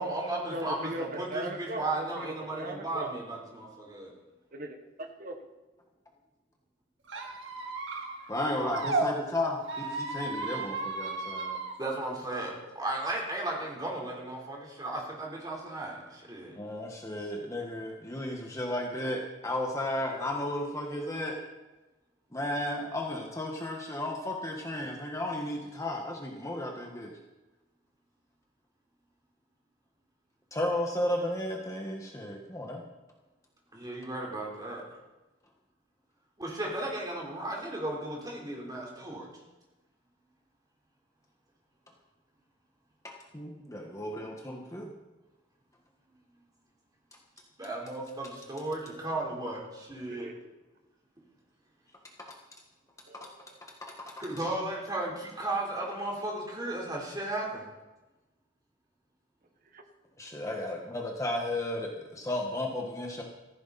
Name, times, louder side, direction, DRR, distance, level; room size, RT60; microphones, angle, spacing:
voice 1, 0.0-4.1 8.6-8.7 11.8-16.6 33.7-34.8 36.4-39.3 47.6-50.4 54.2-57.7, right 2 dB, 20° right, -2 dB, 3.9 m, -35 dB
voice 2, 0.5-3.1 4.5-5.4 50.1-50.3 53.1-53.6 59.7-59.8, right 1 dB, 45° right, 5 dB, 1.5 m, -39 dB
Squeak, 7.1-9.1 9.6-11.7, right 3 dB, 75° right, 2.0 m, -34 dB
voice 3, 8.3-11.6 16.5-21.4 22.3-27.1 30.5-32.8 43.3-44.9 53.8-54.2 60.2-63.2, left 1 dB, 15° left, 0 dB, 1.5 m, -34 dB
16.0 x 15.0 x 4.2 m, 1.1 s
head